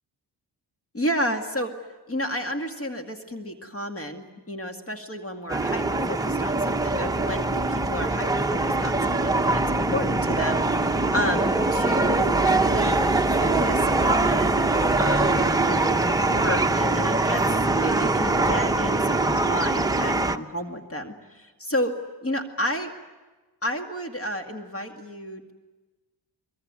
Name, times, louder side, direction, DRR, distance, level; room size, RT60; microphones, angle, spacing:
voice 1, 0.9-1.7 2.1-14.7 15.0-15.4 15.6-21.9 22.2-22.9 23.6-25.5, equal, 35° left, 4 dB, 2.3 m, -31 dB
sound 1, 5.5-20.4, right 2 dB, 10° right, 0.9 m, -23 dB
23.0 x 23.0 x 9.7 m, 1.2 s
cardioid pair, 100°, 40 cm